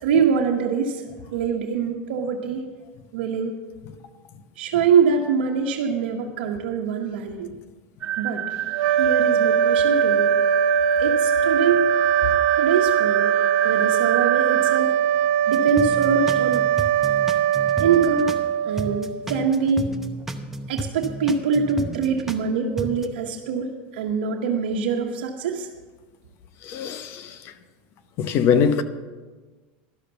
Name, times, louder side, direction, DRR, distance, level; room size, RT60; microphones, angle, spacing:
voice 1, 0.0-1.0 1.3-2.6 3.1-3.6 4.6-7.5 8.2-8.4 9.0-10.3 11.0-11.9 12.5-13.3 13.6-15.0 15.5-16.7 17.8-18.3 18.6-19.9 20.7-25.7, right 6 dB, 85° right, 1.0 m, -24 dB
sound 1, 8.0-14.8, right 10 dB, 25° right, 0.4 m, -28 dB
sound 2, 8.7-19.3, right 8 dB, 65° right, 0.7 m, -21 dB
sound 3, 15.5-18.5 18.8-22.5 22.8-23.1, right 2 dB, 5° right, 0.8 m, -33 dB
voice 2, 26.7-27.2 28.2-28.8, left 7 dB, 50° left, 0.8 m, -21 dB
12.0 x 6.7 x 6.8 m
supercardioid pair, 130°, 5 cm